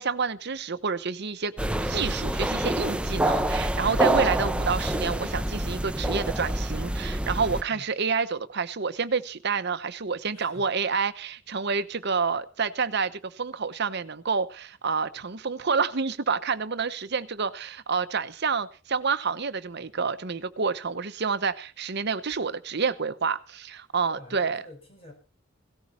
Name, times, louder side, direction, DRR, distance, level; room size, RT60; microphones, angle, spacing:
voice 1, 0.0-1.5 1.8-24.6, right 5 dB, 55° right, 0.9 m, -28 dB
sound 1, 1.6-7.6, right 1 dB, 5° right, 0.6 m, -27 dB
voice 2, 10.3-10.8 24.1-25.1, left 1 dB, 30° left, 4.7 m, -47 dB
17.0 x 14.0 x 4.3 m
head